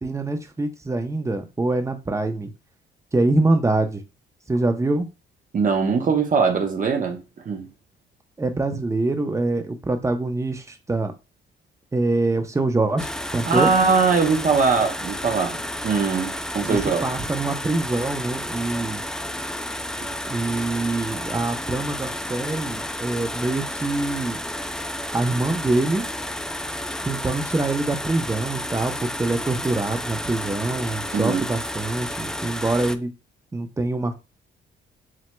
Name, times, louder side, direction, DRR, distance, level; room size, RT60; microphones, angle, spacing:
voice 1, 0.0-2.5 3.1-4.0 4.5-5.1 8.4-11.1 11.9-13.1 13.3-13.7 16.7-19.0 20.2-24.4 25.1-26.0 27.1-33.1 33.5-34.1, right 2 dB, 15° right, 0.7 m, -24 dB
voice 2, 5.5-7.2 7.4-7.7 13.5-17.0 31.1-31.5, right 5 dB, 40° right, 0.9 m, -21 dB
sound 1, 13.0-33.0, left 1 dB, 5° left, 0.3 m, -31 dB
7.5 x 2.8 x 2.2 m
cardioid pair, 90°, 20 cm